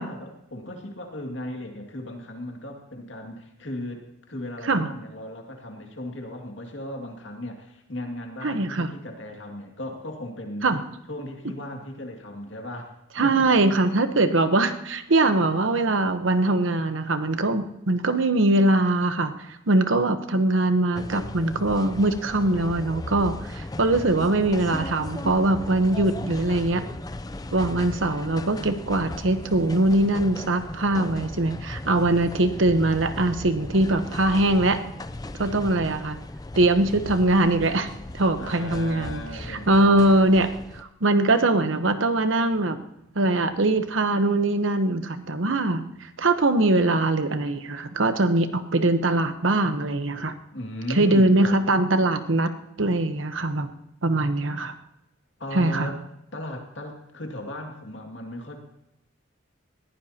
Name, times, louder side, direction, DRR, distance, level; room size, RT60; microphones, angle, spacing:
voice 1, 0.0-10.7 11.1-13.6 38.4-40.4 50.5-51.6 55.4-56.0 56.3-58.6, left 1 dB, 70° left, 3 dB, 2.3 m, -36 dB
voice 2, 8.4-8.9 10.6-10.8 13.2-19.3 19.7-26.8 27.5-34.8 35.4-36.2 36.6-37.9 38.1-39.2 39.5-42.8 43.1-50.3 50.9-52.5 52.8-53.7 54.0-54.7 55.5-55.9, right 2 dB, 75° right, 9 dB, 1.0 m, -22 dB
sound 1, 20.9-40.8, left 2 dB, 20° left, 0.5 m, -37 dB
20.5 x 15.5 x 2.9 m, 0.83 s
head